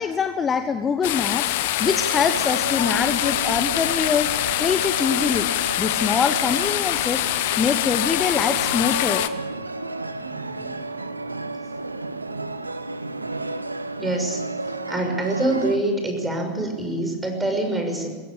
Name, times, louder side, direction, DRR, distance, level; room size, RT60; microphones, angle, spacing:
voice 1, 0.0-1.4 1.8-4.3 4.6-5.5 5.8-7.3 7.6-9.2, left 6 dB, 25° left, 9 dB, 1.2 m, -24 dB
sound 1, 1.0-9.3, left 15 dB, 55° left, 1.1 m, -24 dB
sound 2, 1.8-15.8, right 2 dB, 85° right, 1.0 m, -32 dB
voice 2, 10.1-10.8 14.0-14.4 14.9-18.1, right 1 dB, 10° right, 3 dB, 6.3 m, -25 dB
22.0 x 16.0 x 8.7 m, 1.4 s
figure-of-eight pair, 85°, 0 cm